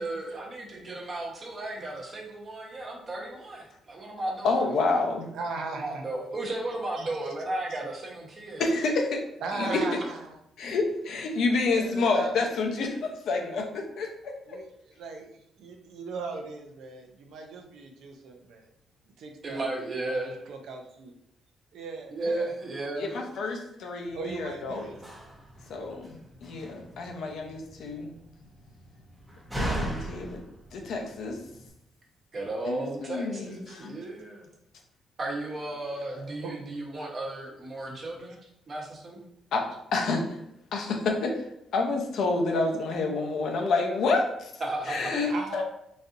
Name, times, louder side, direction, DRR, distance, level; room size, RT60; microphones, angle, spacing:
voice 1, 0.0-4.8 5.7-8.7 9.7-9.8 19.4-20.4 22.1-23.1 32.3-34.5 35.2-38.4 38.7-39.3 44.6-45.1, right 2 dB, 40° right, -2 dB, 1.0 m, -34 dB
voice 2, 4.4-5.3 8.6-9.2 9.5-9.8 10.6-14.6 23.0-24.8 25.7-28.1 29.5-30.4 30.7-31.4 32.6-34.0 39.5-39.6 39.9-40.4 40.7-41.3 41.7-44.5 44.9-45.6, left 3 dB, 70° left, 2 dB, 0.7 m, -28 dB
voice 3, 5.3-6.0 7.0-7.1 7.7-7.8 9.4-10.4 11.7-12.3 14.5-18.7 19.2-21.1 21.7-22.5 23.0-23.2 24.1-25.0 32.7-32.9 36.4-36.6 45.2-45.6, right 4 dB, 75° right, 3 dB, 0.5 m, -39 dB
Slam, 24.1-31.7, right 1 dB, 10° right, 0.8 m, -39 dB
4.0 x 2.6 x 2.5 m, 0.79 s
cardioid pair, 90°, 0 cm